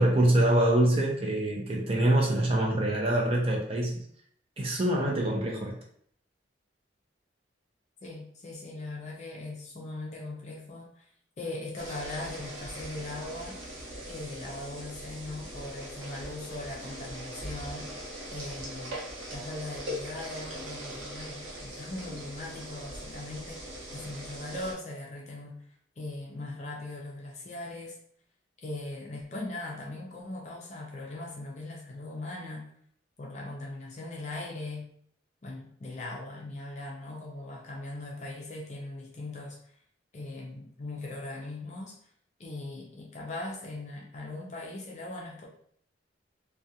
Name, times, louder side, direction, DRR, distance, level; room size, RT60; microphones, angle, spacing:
voice 1, 0.0-4.0 4.6-5.7, right 1 dB, 30° right, -2 dB, 0.5 m, -25 dB
voice 2, 8.0-11.1 11.4-13.6 14.1-17.9 18.3-19.0 19.3-25.6 26.0-28.0 28.6-32.7 33.2-34.9 35.4-39.7 40.1-42.0 42.4-45.5, left 2 dB, 40° left, -1 dB, 0.5 m, -40 dB
fizzy water, 11.8-24.7, equal, 85° right, 0.7 m, -41 dB
2.4 x 2.2 x 2.7 m, 0.62 s
head